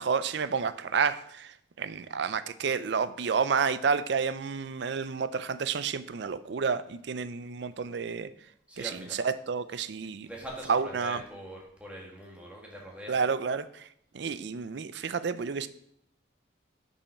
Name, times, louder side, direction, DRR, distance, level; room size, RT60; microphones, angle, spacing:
voice 1, 0.0-1.5 1.8-8.3 8.8-10.3 10.7-11.2 13.1-13.8 14.1-15.7, right 5 dB, 60° right, 14 dB, 0.4 m, -30 dB
voice 2, 8.7-9.2 10.2-13.2, right 1 dB, 5° right, -2 dB, 1.7 m, -42 dB
7.0 x 5.5 x 5.7 m, 0.71 s
head